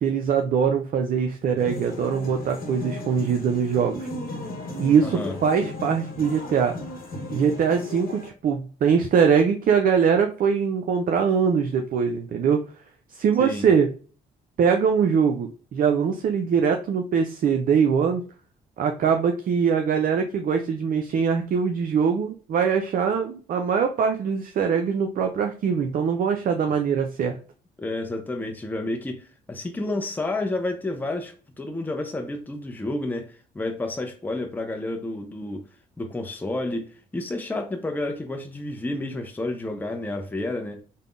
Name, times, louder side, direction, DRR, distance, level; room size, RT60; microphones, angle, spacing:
voice 1, 0.0-4.1 4.8-6.8 7.3-12.6 13.1-13.9 14.6-18.2 18.8-27.4, right 6 dB, 45° right, 0.4 m, -22 dB
sound 1, 1.6-8.3, left 2 dB, 45° left, 0.9 m, -35 dB
voice 2, 5.0-5.4 13.4-13.7 27.8-35.6 36.0-40.8, left 2 dB, 10° left, 0.5 m, -30 dB
3.4 x 2.1 x 2.4 m
hypercardioid pair, 55°, 20 cm